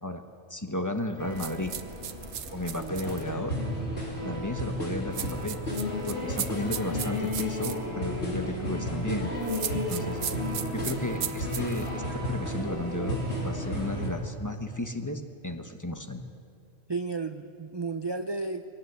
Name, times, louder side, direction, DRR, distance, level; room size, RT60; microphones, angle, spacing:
voice 1, 0.5-1.7 2.5-3.6 4.2-5.6 6.1-9.3 9.7-10.2 10.7-16.3, left 1 dB, 15° left, 6 dB, 1.2 m, -34 dB
sound 1, 1.2-14.1, left 1 dB, 60° left, 4.2 m, -33 dB
sound 2, 1.4-3.2 5.1-7.8 9.4-11.9, right 9 dB, 85° right, 1.2 m, -36 dB
voice 2, 2.8-3.5 16.9-18.7, right 3 dB, 30° right, 8 dB, 0.5 m, -34 dB
23.0 x 18.0 x 8.1 m, 2.4 s
omnidirectional pair, 1.3 m